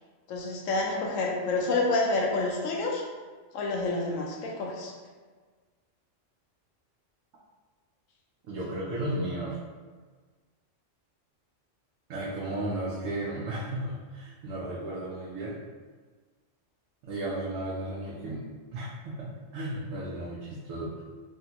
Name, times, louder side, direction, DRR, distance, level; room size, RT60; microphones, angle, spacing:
voice 1, 0.3-3.0 3.5-4.9, left 2 dB, 85° left, 0 dB, 0.9 m, -28 dB
voice 2, 8.5-9.6 12.1-15.6 17.0-18.5 18.7-21.0, right 1 dB, 85° right, -7 dB, 1.0 m, -34 dB
3.3 x 2.3 x 2.8 m, 1.5 s
omnidirectional pair, 1.3 m